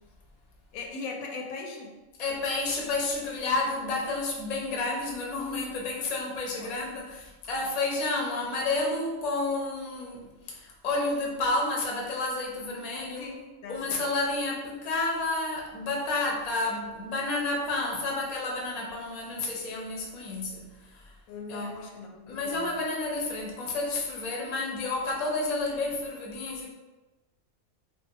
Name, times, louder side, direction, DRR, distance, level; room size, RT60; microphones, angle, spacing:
voice 1, 0.7-1.9 6.5-6.7 13.2-14.0 21.3-22.8, left 3 dB, 85° left, 1 dB, 1.0 m, -39 dB
voice 2, 2.2-13.4 13.7-21.1 21.5-21.7 22.3-26.7, left 2 dB, 45° left, -2 dB, 0.6 m, -30 dB
3.4 x 2.6 x 2.7 m, 1.1 s
omnidirectional pair, 1.4 m